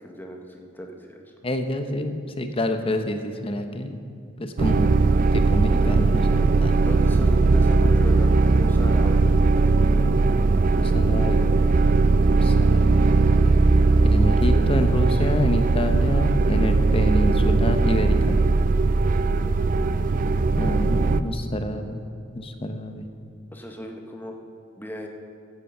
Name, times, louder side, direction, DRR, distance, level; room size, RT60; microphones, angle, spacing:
voice 1, 0.0-1.3 6.8-9.3 14.5-15.3 23.5-24.4 24.8-25.1, equal, 10° left, 2 dB, 1.1 m, -37 dB
voice 2, 1.4-4.0 4.4-4.9 5.3-6.7 10.7-11.5 12.3-13.0 14.1-18.4 20.5-22.0 22.3-23.1, left 1 dB, 30° left, 7 dB, 0.8 m, -27 dB
sound 1, 4.6-21.2, right 3 dB, 40° right, 0.4 m, -19 dB
14.0 x 8.2 x 5.5 m, 2.4 s
head